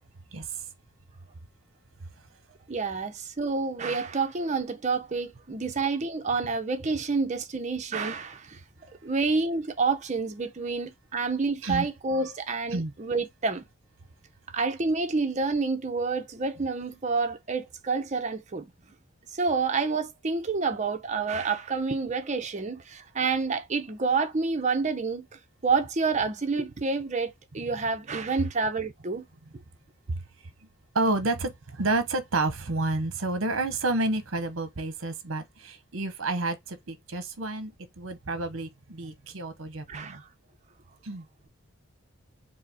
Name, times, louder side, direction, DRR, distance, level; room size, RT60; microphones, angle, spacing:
voice 1, 0.3-0.6 2.0-2.1 11.6-12.2 12.7-12.9 30.1-30.2 30.9-40.2 41.0-41.3, right 2 dB, 60° right, 0.8 m, -30 dB
voice 2, 2.7-8.6 9.0-13.6 14.5-18.6 19.3-25.3 25.6-29.3 39.9-40.2, right 4 dB, 35° right, 0.5 m, -28 dB
4.8 x 2.0 x 4.1 m
head